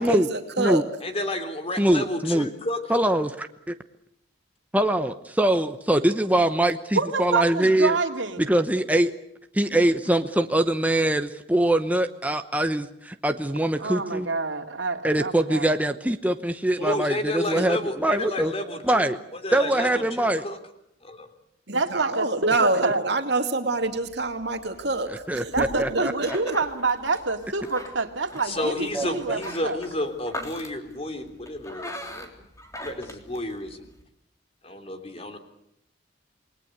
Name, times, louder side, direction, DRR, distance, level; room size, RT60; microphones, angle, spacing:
voice 1, 0.0-0.8 16.8-16.9 17.6-17.7 21.7-26.6, right 2 dB, 60° right, 6 dB, 2.6 m, -27 dB
voice 2, 1.0-2.8 16.8-20.6 21.0-21.3 28.4-32.3 32.8-33.9 34.6-35.4, left 1 dB, 30° left, 8 dB, 3.4 m, -31 dB
voice 3, 1.8-2.5 2.9-3.3 4.7-8.0 8.4-9.1 9.5-14.3 15.0-18.5 18.8-19.2 19.5-20.4 25.3-26.4 28.6-29.4, right 1 dB, 10° right, 7 dB, 0.9 m, -23 dB
voice 4, 6.9-8.5 13.8-15.8 21.7-23.0 25.5-29.8, right 3 dB, 85° right, 5 dB, 2.5 m, -27 dB
sound 1, 23.7-34.0, left 1 dB, 15° left, 3.4 m, -42 dB
28.5 x 20.5 x 8.1 m, 0.76 s
head